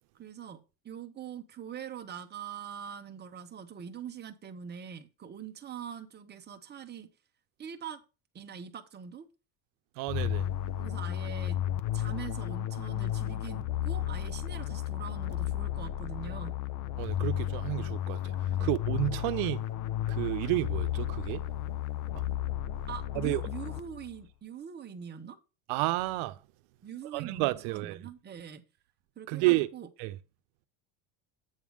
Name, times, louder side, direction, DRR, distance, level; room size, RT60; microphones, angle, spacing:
voice 1, 0.1-7.1 7.6-8.0 8.3-9.3 10.8-11.6 11.9-16.6 18.5-18.7 22.9-25.4 26.8-28.6 29.2-29.9, right 8 dB, 20° right, 0.8 m, -43 dB
voice 2, 10.0-10.5 17.0-19.7 20.1-21.4 23.1-23.4 25.7-26.4 27.1-28.0 29.3-29.7 30.0-30.2, right 20 dB, 80° right, 0.8 m, -31 dB
sound 1, 10.1-24.2, left 12 dB, 40° left, 0.4 m, -33 dB
8.2 x 3.5 x 6.3 m
cardioid pair, 150°, 49 cm